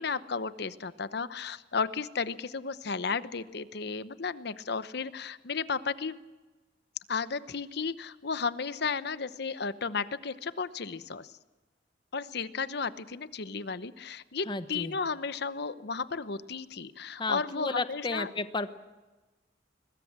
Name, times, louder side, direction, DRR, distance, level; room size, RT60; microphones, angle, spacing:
voice 1, 0.0-6.2 7.1-11.3 12.1-18.3, left 5 dB, 65° left, 14 dB, 0.9 m, -34 dB
voice 2, 14.5-15.0 17.2-18.7, left 3 dB, 25° left, 11 dB, 1.1 m, -33 dB
21.5 x 21.5 x 7.4 m, 1.2 s
head